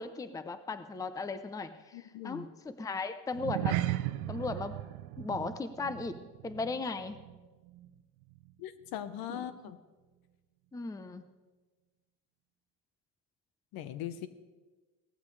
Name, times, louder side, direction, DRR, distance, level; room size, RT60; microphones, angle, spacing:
voice 1, 0.0-3.8 4.3-4.8 5.2-6.2 6.4-7.2 9.3-9.4 10.7-11.2, left 3 dB, 10° left, 11 dB, 0.5 m, -37 dB
voice 2, 1.9-2.5 8.6-9.8 13.7-14.3, left 11 dB, 70° left, 12 dB, 1.0 m, -40 dB
sound 1, 3.3-8.0 8.2-8.5 9.0-9.1, right 16 dB, 90° right, 0.7 m, -36 dB
18.0 x 13.5 x 3.2 m, 1.3 s
cardioid pair, 120°, 37 cm